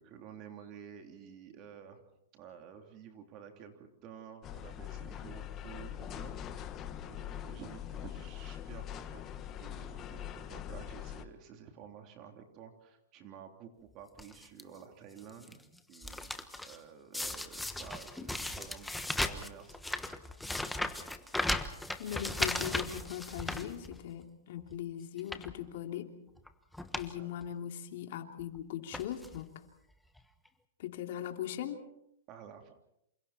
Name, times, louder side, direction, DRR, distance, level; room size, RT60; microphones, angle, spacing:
voice 1, 0.0-2.0 2.3-15.6 15.9-19.8 27.1-27.3 32.3-32.7, right 7 dB, 35° right, 5 dB, 3.4 m, -51 dB
sound 1, 4.4-11.3, left 10 dB, 25° left, 1.5 m, -43 dB
sound 2, 14.2-14.6 15.2-15.5 15.8-16.8 17.1-24.2 24.6-24.7 25.2-25.5 26.4-26.5 26.7-27.1 27.4-27.5 28.4-28.6 28.9-29.4 30.2-30.3 30.4-30.5, left 1 dB, 5° left, 1.2 m, -37 dB
voice 2, 22.0-26.1 26.9-29.5 30.8-31.9, left 10 dB, 55° left, 5 dB, 3.0 m, -39 dB
28.0 x 28.0 x 4.4 m, 0.78 s
hypercardioid pair, 145°, 0 cm